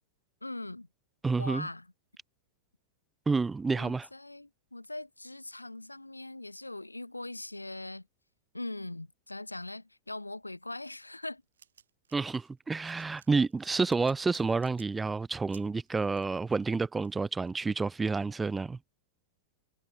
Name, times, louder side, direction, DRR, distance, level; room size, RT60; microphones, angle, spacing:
voice 1, 0.4-0.9 1.4-1.9 3.7-8.1 8.5-11.4, left 2 dB, 85° left, 2.8 m, -41 dB
voice 2, 1.2-1.7 3.3-4.1 12.1-18.8, right 4 dB, 10° right, 0.3 m, -29 dB
sound 1, 10.8-17.9, right 8 dB, 70° right, 6.9 m, -60 dB
figure-of-eight pair, 95°, 0 cm